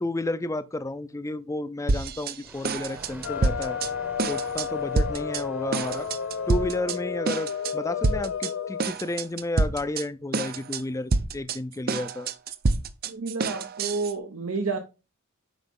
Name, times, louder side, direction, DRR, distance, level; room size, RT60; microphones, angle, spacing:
voice 1, 0.0-3.8 4.3-6.1 6.5-12.3, left 2 dB, 15° left, 0.4 m, -31 dB
sound 1, 1.9-2.4 2.6-3.9 4.2-4.7 5.0-5.4 5.7-7.0 7.3-7.7 8.0-8.5 8.8-10.0 10.3-10.8 11.1-14.1, right 3 dB, 45° right, 0.6 m, -27 dB
Thunder, 2.4-7.8, right 1 dB, 10° right, 0.8 m, -47 dB
sound 2, 3.2-8.9, left 7 dB, 70° left, 0.5 m, -32 dB
voice 2, 13.1-14.8, right 4 dB, 80° right, 0.8 m, -30 dB
7.8 x 5.1 x 3.6 m
head